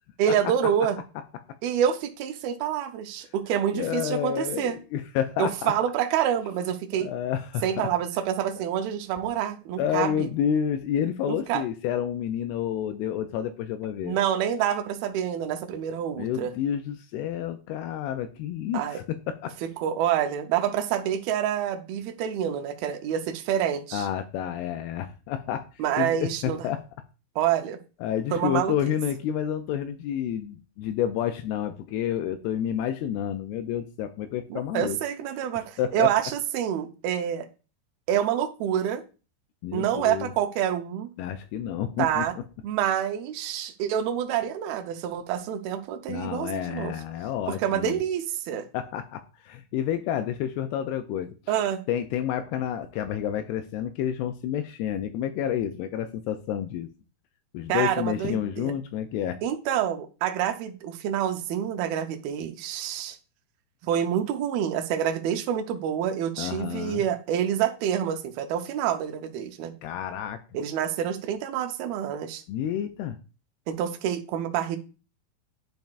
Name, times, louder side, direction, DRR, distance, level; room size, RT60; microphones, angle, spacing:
voice 1, 0.2-1.0 1.6-4.8 5.4-7.1 7.6-10.3 11.3-11.6 14.0-16.5 18.7-19.0 19.8-24.1 25.8-26.6 27.4-27.8 28.3-28.7 34.5-37.5 38.1-39.0 39.7-41.1 42.0-42.3 42.6-46.9 47.5-48.7 51.5-51.8 57.7-58.7 59.4-63.2 63.8-69.7 70.5-72.4 73.7-74.8, right 9 dB, 80° right, 2.3 m, -27 dB
voice 2, 3.7-5.7 7.0-7.9 9.8-14.2 16.2-19.5 23.9-25.6 26.0-26.8 28.0-35.0 35.8-36.1 39.6-40.3 41.2-42.3 46.1-48.0 48.7-51.6 51.9-56.9 57.5-59.4 66.4-67.0 69.8-70.4 72.5-73.2, left 9 dB, 85° left, 2.4 m, -29 dB
10.5 x 4.5 x 2.4 m
omnidirectional pair, 4.8 m